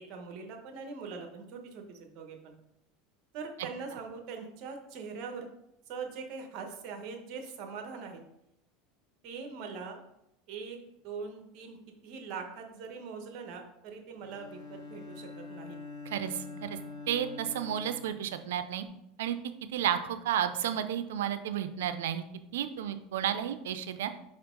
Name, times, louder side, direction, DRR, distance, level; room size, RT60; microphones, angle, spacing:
voice 1, 0.0-2.6 3.3-5.5 5.9-8.2 9.2-10.0 10.5-10.8 11.0-11.8 12.0-15.8 23.2-23.3, right 5 dB, 55° right, 4 dB, 1.2 m, -42 dB
Bowed string instrument, 14.2-18.8, left 3 dB, 35° left, 2.0 m, -45 dB
voice 2, 16.1-16.8 17.1-18.8 19.2-19.4 19.7-22.2 22.5-24.1, right 10 dB, 90° right, 10 dB, 0.5 m, -32 dB
5.8 x 4.4 x 3.8 m, 0.83 s
supercardioid pair, 120°, 0 cm